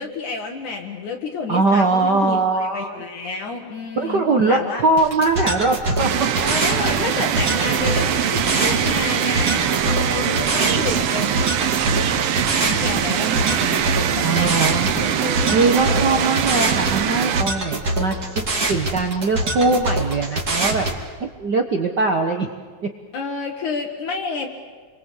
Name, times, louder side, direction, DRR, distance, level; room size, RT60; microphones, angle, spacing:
voice 1, 0.0-4.9 6.4-11.5 12.6-13.9 14.2-16.4 23.1-24.5, left 4 dB, 65° left, 2 dB, 2.9 m, -30 dB
voice 2, 1.5-3.0 4.0-6.1 14.2-14.9 15.5-18.2 18.7-20.9 21.2-22.5, right 3 dB, 70° right, 4 dB, 1.0 m, -21 dB
sound 1, 5.0-21.0, right 2 dB, 30° right, 2.6 m, -25 dB
sound 2, 6.0-17.4, right 9 dB, 85° right, 1.3 m, -22 dB
28.0 x 23.0 x 8.4 m, 1.5 s
omnidirectional pair, 4.0 m